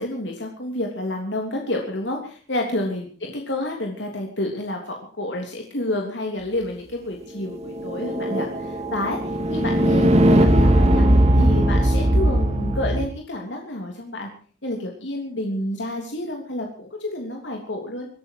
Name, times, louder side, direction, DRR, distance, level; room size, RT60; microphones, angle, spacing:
voice 1, 0.0-9.2 9.5-14.3 14.6-18.1, left 1 dB, 80° left, 1 dB, 3.2 m, -29 dB
sound 1, 7.5-13.1, right 1 dB, 40° right, 2.0 m, -19 dB
24.0 x 12.5 x 4.8 m, 0.43 s
head